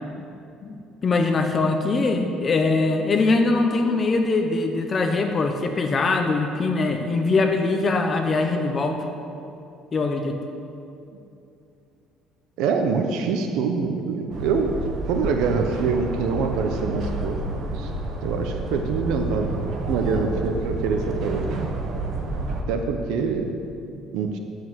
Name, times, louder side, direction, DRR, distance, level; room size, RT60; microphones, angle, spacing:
voice 1, 1.0-9.0 9.9-10.4, left 3 dB, 25° left, 4 dB, 0.8 m, -22 dB
voice 2, 12.6-14.8 15.1-17.4 17.7-17.9 18.2-21.7 22.7-23.5 24.1-24.4, right 5 dB, 75° right, 4 dB, 0.9 m, -25 dB
sound 1, 14.3-22.6, right 2 dB, 45° right, 1.2 m, -30 dB
10.0 x 7.8 x 7.8 m, 2.7 s
cardioid pair, 155°, 0 cm